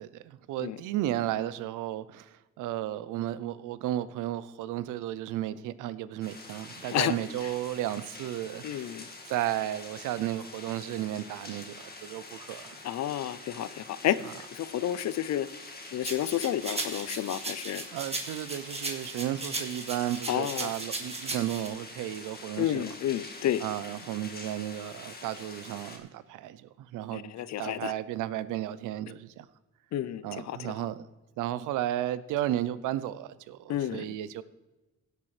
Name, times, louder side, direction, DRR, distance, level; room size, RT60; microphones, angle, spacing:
voice 1, 0.0-8.9 9.3-12.8 17.9-22.9 23.6-29.5 30.2-31.0 31.4-34.4, right 13 dB, 90° right, 0.6 m, -34 dB
sound 1, 6.2-26.0, left 3 dB, 30° left, 1.9 m, -46 dB
voice 2, 8.6-9.1 12.8-17.8 20.3-20.7 22.6-23.6 27.1-27.9 29.9-30.7 33.7-34.1, left 11 dB, 60° left, 0.6 m, -31 dB
sound 2, 16.0-21.7, right 2 dB, 20° right, 1.9 m, -37 dB
16.0 x 8.3 x 3.2 m
cardioid pair, 90°, 30 cm